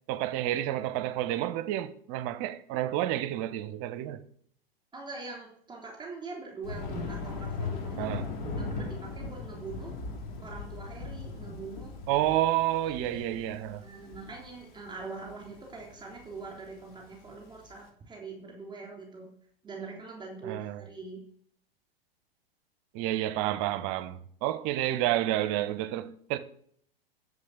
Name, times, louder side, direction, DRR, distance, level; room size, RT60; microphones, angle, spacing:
voice 1, 0.1-4.2 8.0-8.3 12.1-13.8 20.4-20.8 22.9-26.4, right 13 dB, 40° right, 1.0 m, -30 dB
voice 2, 4.9-9.9 10.4-11.9 12.8-13.3 13.8-19.3 19.6-21.2, right 4 dB, 15° right, 3.6 m, -43 dB
Thunder, 6.6-17.7, left 3 dB, 50° left, 3.4 m, -39 dB
11.0 x 7.6 x 7.9 m
figure-of-eight pair, 95°, 30 cm